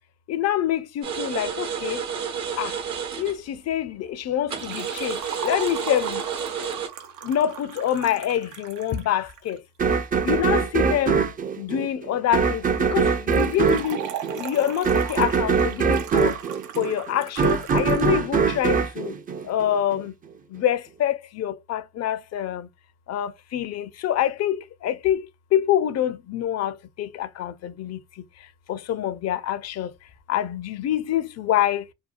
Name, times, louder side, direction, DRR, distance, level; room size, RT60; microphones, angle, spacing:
voice 1, 0.3-2.0 2.6-2.7 3.2-5.2 5.4-6.2 7.2-9.6 10.3-11.2 11.6-12.6 12.9-14.0 14.4-16.3 16.8-19.1 19.5-20.1 20.5-22.7 23.1-25.2 25.5-28.0 28.7-29.9 30.3-31.8, left 11 dB, 60° left, 0.5 m, -26 dB
sound 1, 1.0-3.4 4.5-6.9, right 7 dB, 65° right, 1.0 m, -30 dB
Liquid, 4.6-9.6 13.3-18.1 18.4-18.5 19.4-19.5, right 8 dB, 80° right, 0.6 m, -38 dB
sound 2, 9.8-20.0, right 5 dB, 30° right, 0.4 m, -23 dB
2.7 x 2.2 x 2.4 m
cardioid pair, 90°, 30 cm